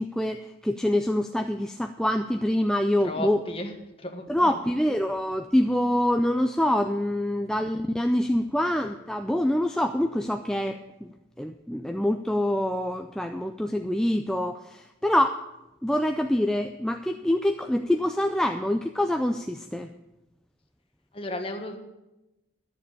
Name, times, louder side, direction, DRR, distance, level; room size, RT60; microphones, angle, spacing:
voice 1, 0.0-3.4 4.3-11.1 11.4-15.4 15.8-19.9, left 1 dB, 5° left, 6 dB, 0.3 m, -25 dB
voice 2, 3.0-4.5 21.1-21.8, left 1 dB, 30° left, 4 dB, 1.3 m, -34 dB
11.5 x 6.9 x 8.4 m, 0.96 s
head